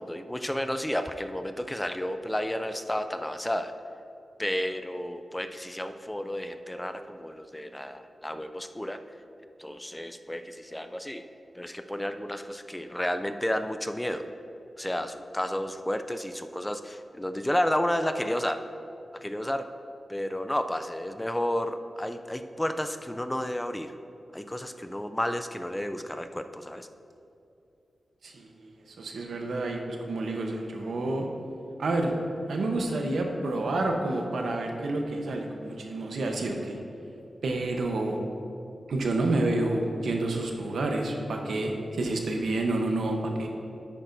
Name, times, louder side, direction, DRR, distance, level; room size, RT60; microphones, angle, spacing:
voice 1, 0.0-3.7 4.4-9.0 9.6-11.2 11.5-14.3 14.8-18.6 19.2-19.7 20.1-23.9 24.3-26.9, left 1 dB, 10° left, 8 dB, 0.4 m, -31 dB
voice 2, 28.2-31.3 31.8-32.1 32.5-36.8 37.4-38.2 38.9-43.5, right 2 dB, 90° right, 2 dB, 0.9 m, -29 dB
10.5 x 8.6 x 2.6 m, 2.7 s
wide cardioid pair, 95°, 0 cm